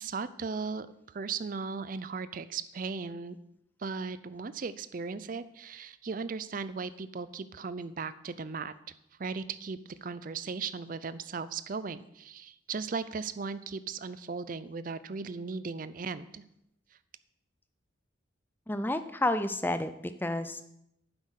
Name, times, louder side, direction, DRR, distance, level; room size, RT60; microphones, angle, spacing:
voice 1, 0.0-3.4 3.8-8.7 9.2-16.4, right 5 dB, 40° right, 14 dB, 0.4 m, -37 dB
voice 2, 18.7-20.6, left 1 dB, 10° left, 10 dB, 0.5 m, -30 dB
9.7 x 7.6 x 6.4 m, 0.80 s
head